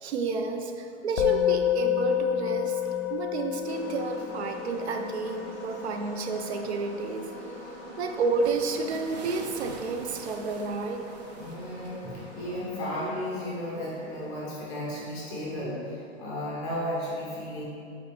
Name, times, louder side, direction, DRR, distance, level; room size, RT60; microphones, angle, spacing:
voice 1, 0.0-2.8 3.1-7.3 8.0-11.1 12.4-12.6, right 4 dB, 70° right, 5 dB, 0.7 m, -30 dB
Musical instrument, 1.2-10.7, left 13 dB, 70° left, 0.6 m, -31 dB
sound 1, 3.6-16.2, equal, 20° right, 1.1 m, -45 dB
sound 2, 8.4-13.1, right 4 dB, 40° right, 0.4 m, -47 dB
voice 2, 11.4-17.6, left 1 dB, 10° left, -5 dB, 0.5 m, -34 dB
8.5 x 4.4 x 3.3 m, 2.5 s
hypercardioid pair, 170°, 34 cm